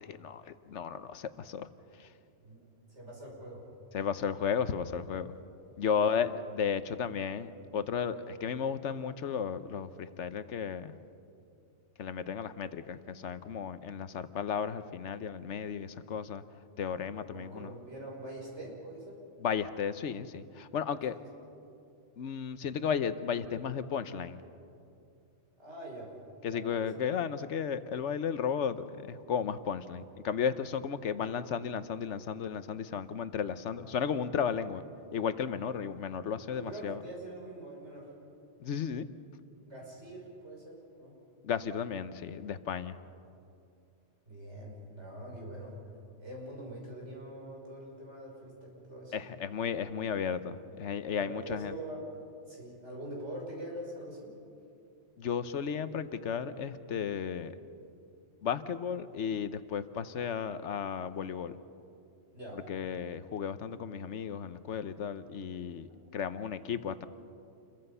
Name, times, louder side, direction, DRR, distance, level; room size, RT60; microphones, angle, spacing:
voice 1, 0.0-1.7 2.0-2.1 3.9-5.3 5.8-10.9 12.0-16.4 16.8-17.7 19.4-21.2 22.2-24.4 26.4-34.8 35.1-37.0 38.6-39.1 41.4-43.0 49.1-51.7 55.2-57.5 58.4-61.6 62.7-67.1, left 7 dB, 80° left, 12 dB, 1.1 m, -34 dB
voice 2, 2.4-3.6 5.9-6.3 17.3-19.2 21.1-21.2 25.6-26.1 26.4-26.9 36.5-38.1 39.7-41.1 44.3-45.7 46.2-49.2 51.2-52.0 52.5-54.3 62.3-62.6, right 1 dB, 70° right, -3 dB, 6.1 m, -44 dB
28.5 x 22.5 x 5.6 m, 2.6 s
omnidirectional pair, 1.2 m